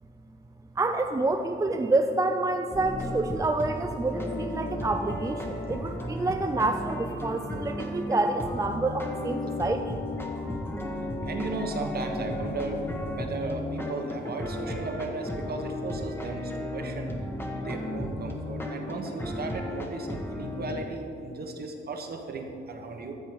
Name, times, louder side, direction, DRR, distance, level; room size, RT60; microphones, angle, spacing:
voice 1, 0.8-10.0, right 2 dB, 15° right, 6 dB, 0.4 m, -28 dB
sound 1, 2.7-20.7, left 1 dB, 10° left, 1.2 m, -34 dB
voice 2, 11.2-17.1 17.6-23.1, right 3 dB, 50° right, 4 dB, 1.3 m, -35 dB
13.0 x 7.2 x 4.7 m, 2.8 s
wide cardioid pair, 120°, 20 cm